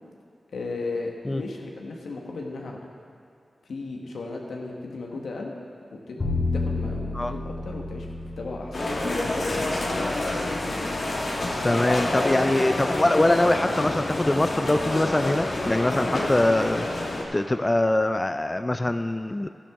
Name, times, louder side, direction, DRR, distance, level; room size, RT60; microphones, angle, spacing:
voice 1, 0.5-2.8 3.7-5.5 6.1-6.2 6.5-8.1 8.4-8.8 9.5-9.8 11.6-11.9, left 3 dB, 90° left, 0 dB, 1.2 m, -35 dB
Bowed string instrument, 6.2-12.4, left 3 dB, 45° left, 2.2 m, -33 dB
sound 1, 8.7-17.2, left 2 dB, 65° left, 1.6 m, -27 dB
voice 2, 11.6-19.5, left 1 dB, 30° left, 9 dB, 0.4 m, -23 dB
12.0 x 10.5 x 3.6 m, 2.5 s
cardioid pair, 40°, 0 cm